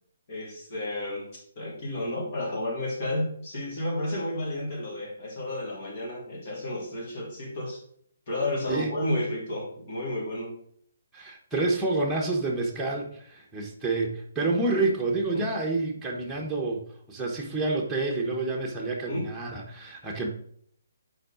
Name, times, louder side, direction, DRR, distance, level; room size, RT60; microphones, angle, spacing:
voice 1, 0.3-7.8 8.3-10.5 15.3-15.5 19.1-19.3, left 1 dB, 45° left, -2 dB, 3.0 m, -32 dB
voice 2, 11.1-20.3, right 3 dB, 5° right, -3 dB, 1.3 m, -28 dB
6.5 x 4.8 x 5.0 m, 0.64 s
figure-of-eight pair, 135°, 0 cm